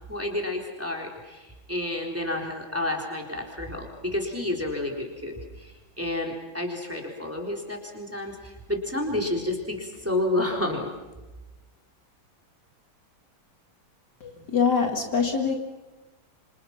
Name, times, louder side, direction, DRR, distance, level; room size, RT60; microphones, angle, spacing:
voice 1, 0.1-5.7 6.0-10.9, left 1 dB, 5° right, 0 dB, 3.7 m, -30 dB
voice 2, 14.2-15.5, left 6 dB, 55° left, 3 dB, 2.7 m, -24 dB
27.0 x 26.5 x 5.8 m, 1.1 s
omnidirectional pair, 2.2 m